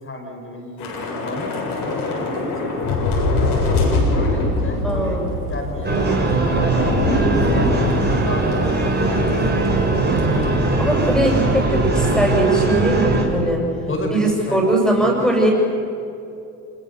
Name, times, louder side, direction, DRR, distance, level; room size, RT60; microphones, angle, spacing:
voice 1, 0.0-2.9 4.1-7.0 7.5-9.4 13.9-15.3, left 1 dB, 25° left, 3 dB, 5.4 m, -31 dB
Thunder / Rain, 0.8-9.4 9.6-9.8 10.2-10.4, left 2 dB, 60° left, 7.4 m, -23 dB
voice 2, 4.8-5.3 10.8-13.6 14.1-15.5, right 1 dB, ahead, -1 dB, 7.6 m, -20 dB
sound 1, 5.8-13.2, right 2 dB, 20° right, 5.2 m, -19 dB
26.5 x 22.0 x 7.2 m, 2.8 s
hypercardioid pair, 65°, 45 cm